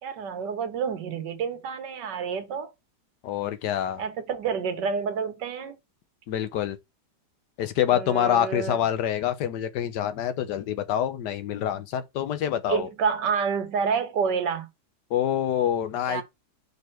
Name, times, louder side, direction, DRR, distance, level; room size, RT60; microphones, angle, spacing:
voice 1, 0.0-2.7 4.0-5.8 7.9-8.8 12.7-14.7 16.1-16.2, right 6 dB, 90° right, 1.7 m, -28 dB
voice 2, 3.2-4.0 6.3-6.8 7.6-12.9 15.1-16.2, left 10 dB, 80° left, 1.4 m, -26 dB
5.4 x 4.0 x 4.4 m
omnidirectional pair, 1.8 m